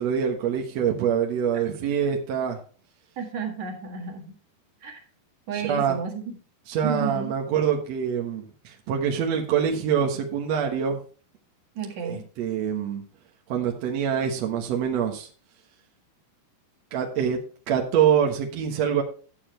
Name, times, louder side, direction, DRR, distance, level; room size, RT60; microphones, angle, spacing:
voice 1, 0.0-2.6 5.5-6.0 6.7-11.0 12.0-13.0 13.5-15.3 16.9-17.4 17.7-19.0, right 8 dB, 75° right, 1 dB, 1.5 m, -25 dB
voice 2, 3.2-4.3 4.8-5.0 5.5-6.4 6.8-7.3 11.8-12.2, right 6 dB, 50° right, 1 dB, 2.6 m, -32 dB
11.0 x 7.0 x 4.4 m, 0.39 s
omnidirectional pair, 5.0 m